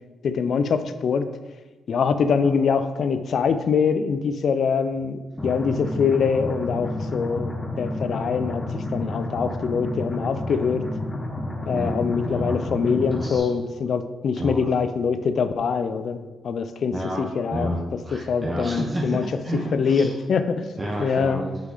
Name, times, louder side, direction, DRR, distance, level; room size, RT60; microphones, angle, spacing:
voice 1, 0.2-1.3 1.9-10.9 11.7-16.2 16.4-17.7 18.3-19.2 19.7-20.7 21.0-21.4, left 6 dB, 65° left, 11 dB, 0.5 m, -24 dB
sound 1, 5.4-13.4, left 1 dB, 25° left, 1.3 m, -30 dB
voice 2, 11.7-12.6 13.1-13.5 14.4-14.7 16.9-20.1 20.8-21.6, equal, 25° right, -2 dB, 1.1 m, -30 dB
5.8 x 5.8 x 4.0 m, 1.2 s
cardioid pair, 70°, 0 cm